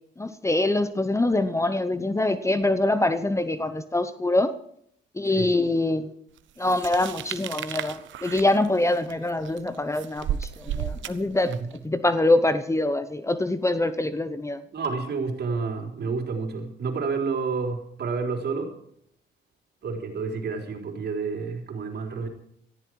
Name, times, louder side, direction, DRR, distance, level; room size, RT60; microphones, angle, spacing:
voice 1, 0.2-4.5 5.1-6.1 6.6-11.5 11.8-14.6, left 2 dB, 15° left, 12 dB, 0.9 m, -24 dB
sound 1, 6.6-11.8, right 10 dB, 75° right, 1.0 m, -34 dB
voice 2, 14.7-18.7 19.8-22.3, right 4 dB, 55° right, 3 dB, 4.1 m, -29 dB
17.5 x 14.0 x 4.8 m, 0.70 s
cardioid pair, 90°, 20 cm